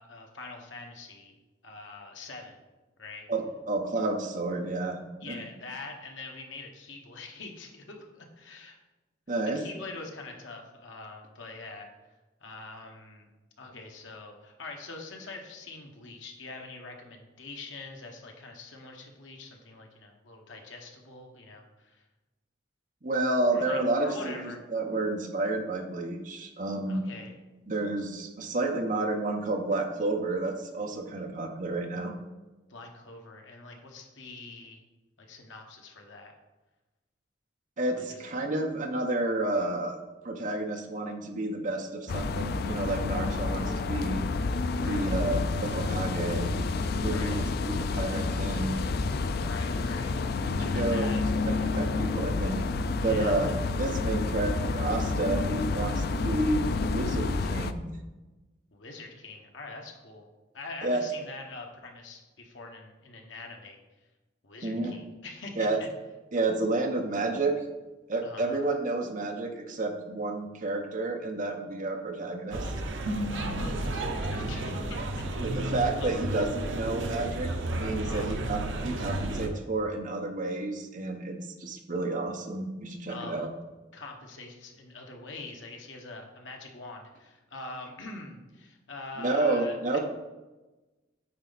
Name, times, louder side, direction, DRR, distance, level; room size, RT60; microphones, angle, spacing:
voice 1, 0.0-1.4 1.6-2.6 3.0-3.3 5.2-8.8 9.5-11.9 12.4-13.3 13.6-22.0 23.5-24.6 26.9-27.4 32.7-34.8 35.2-36.3 37.9-38.2 44.7-45.1 47.0-47.5 49.3-50.1 50.6-51.2 53.0-53.5 58.7-60.3 60.5-63.8 64.4-65.9 68.2-68.6 73.3-75.2 75.6-76.1 78.0-78.4 83.1-83.5 83.9-90.0, left 3 dB, 80° left, 2 dB, 1.1 m, -44 dB
voice 2, 3.3-5.0 5.3-5.4 9.3-9.6 23.0-27.0 27.7-32.1 37.8-40.0 40.2-44.2 44.9-46.5 47.0-48.9 50.5-52.6 53.0-57.9 60.8-61.0 64.6-65.0 65.6-65.8 66.3-67.5 68.1-72.7 75.4-77.5 77.8-83.5 89.2-90.0, right 2 dB, 45° right, 3 dB, 0.8 m, -30 dB
sound 1, 42.1-57.7, left 3 dB, 55° left, 0.4 m, -29 dB
sound 2, 72.5-79.5, right 1 dB, 70° right, 0.8 m, -32 dB
8.8 x 4.1 x 4.0 m, 1.1 s
head